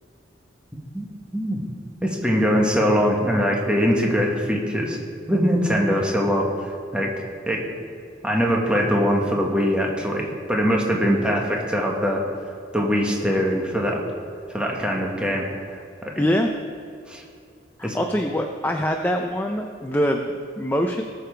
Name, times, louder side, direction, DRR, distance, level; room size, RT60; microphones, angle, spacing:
voice 1, 0.9-1.6 2.0-5.0 5.3-7.1 7.4-7.6 8.2-12.2 12.7-14.0 14.5-16.1 17.1-17.2 17.8-18.0, equal, 5° right, -2 dB, 1.4 m, -22 dB
voice 2, 16.2-16.5 17.8-21.0, equal, 10° left, 3 dB, 0.6 m, -24 dB
19.5 x 6.9 x 4.6 m, 2.3 s
head